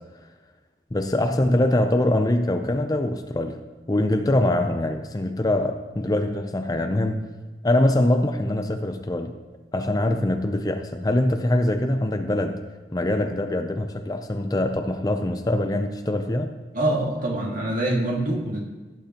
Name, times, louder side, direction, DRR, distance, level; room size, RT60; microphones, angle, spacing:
voice 1, 0.9-3.6 3.9-7.3 7.6-9.3 9.7-12.6 12.9-16.5, left 1 dB, 20° left, 6 dB, 0.5 m, -23 dB
voice 2, 16.7-18.6, right 1 dB, 50° right, -1 dB, 2.1 m, -25 dB
16.5 x 9.2 x 3.0 m, 1.3 s
head